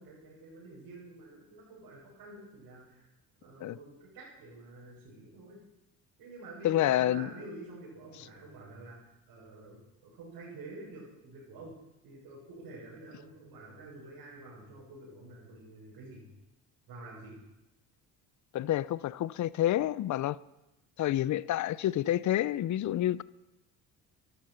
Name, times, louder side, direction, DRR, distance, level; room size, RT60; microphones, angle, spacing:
voice 1, 0.0-3.1 3.4-5.6 6.2-11.7 12.0-16.3 16.9-17.4, right 2 dB, 70° right, 7.3 m, -48 dB
voice 2, 6.6-7.3 18.5-20.4 21.0-23.2, left 13 dB, 45° left, 0.6 m, -28 dB
17.0 x 12.0 x 5.9 m
supercardioid pair, 70°, 41 cm